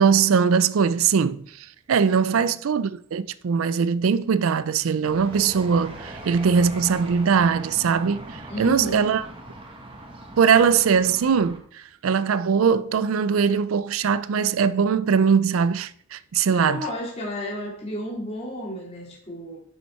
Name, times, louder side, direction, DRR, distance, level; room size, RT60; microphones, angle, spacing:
voice 1, 0.0-9.2 10.4-16.9, right 6 dB, 80° right, 0.4 m, -21 dB
sound 1, 5.1-11.6, right 1 dB, 25° right, 1.5 m, -40 dB
voice 2, 8.5-9.1 16.5-19.6, left 1 dB, 30° left, 2.5 m, -32 dB
10.0 x 5.6 x 4.4 m
head